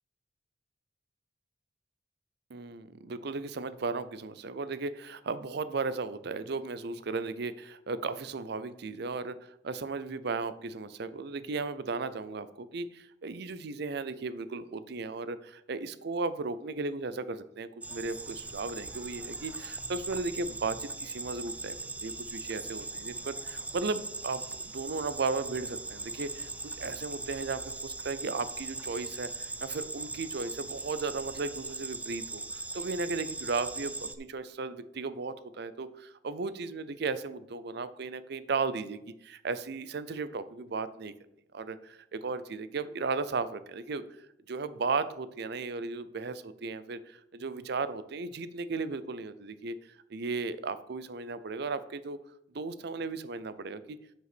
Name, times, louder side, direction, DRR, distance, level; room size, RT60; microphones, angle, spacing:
voice 1, 2.5-21.7 22.0-24.4 24.7-41.1 41.5-44.0 44.5-49.8 50.1-52.2 52.5-54.0, right 4 dB, 60° right, 14 dB, 0.5 m, -35 dB
sound 1, 17.8-34.1, right 3 dB, 10° right, 0.5 m, -40 dB
7.8 x 5.5 x 6.0 m, 0.80 s
head